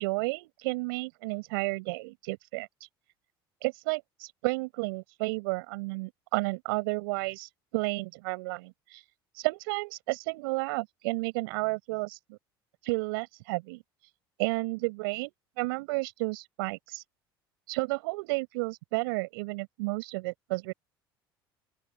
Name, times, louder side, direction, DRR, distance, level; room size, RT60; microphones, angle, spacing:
voice 1, 0.0-2.7 3.6-9.0 9.4-12.4 12.8-13.8 14.4-17.0 17.7-20.7, right 26 dB, 70° right, 6.8 m, -32 dB
open air
hypercardioid pair, 70°, 12 cm